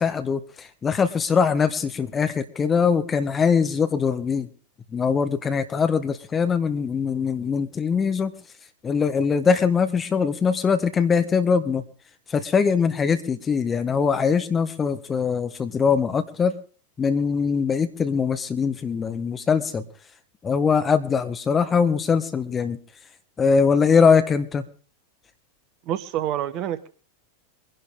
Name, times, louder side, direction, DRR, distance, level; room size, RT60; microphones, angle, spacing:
voice 1, 0.0-4.5 4.9-8.3 8.8-11.8 12.3-16.5 17.0-19.8 20.4-22.8 23.4-24.6, left 6 dB, 20° left, 9 dB, 1.5 m, -22 dB
voice 2, 25.9-26.9, right 11 dB, 40° right, 14 dB, 1.1 m, -27 dB
23.5 x 11.0 x 3.7 m, 0.41 s
figure-of-eight pair, 90°, 0 cm